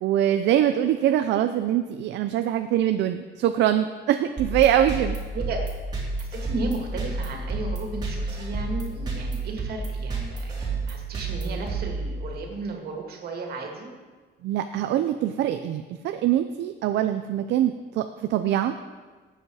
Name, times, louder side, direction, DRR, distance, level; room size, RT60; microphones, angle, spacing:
voice 1, 0.0-5.2 14.4-18.7, right 11 dB, 75° right, 8 dB, 0.6 m, -23 dB
sound 1, 4.4-12.5, right 3 dB, 25° right, 3.1 m, -31 dB
voice 2, 6.2-13.9, right 3 dB, 60° right, 1 dB, 2.5 m, -34 dB
18.5 x 8.0 x 4.9 m, 1.4 s
cardioid pair, 175°, 18 cm